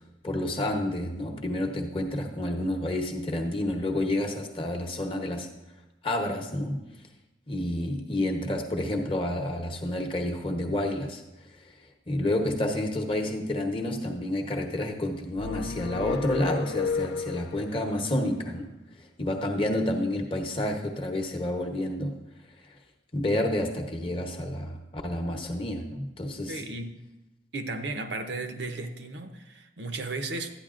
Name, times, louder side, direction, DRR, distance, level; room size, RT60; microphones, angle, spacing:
voice 1, 0.2-5.5 6.0-6.8 7.5-11.2 12.1-18.7 19.2-22.1 23.1-26.6, left 1 dB, 30° left, 3 dB, 0.9 m, -29 dB
sound 1, 15.3-17.8, left 6 dB, 70° left, 0.3 m, -32 dB
voice 2, 26.5-26.9 27.5-30.5, right 2 dB, 65° right, 6 dB, 0.7 m, -34 dB
12.0 x 9.2 x 2.5 m, 0.98 s
head